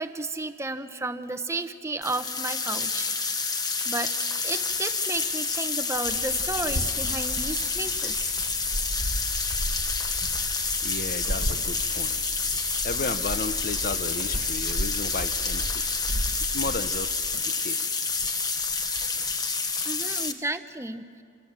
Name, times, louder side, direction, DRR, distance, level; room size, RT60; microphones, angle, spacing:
voice 1, 0.0-3.1 3.8-4.1 4.4-8.3 19.8-21.2, right 2 dB, 15° right, 10 dB, 0.9 m, -33 dB
sound 1, 2.0-20.3, left 4 dB, 20° left, 1.2 m, -28 dB
Dog, 6.0-17.4, right 1 dB, 75° right, 1.9 m, -35 dB
voice 2, 10.8-12.4 12.8-15.8 16.4-17.8 18.5-18.6 19.5-20.3, left 3 dB, 45° left, 11 dB, 1.0 m, -35 dB
30.0 x 26.0 x 7.5 m, 2.2 s
head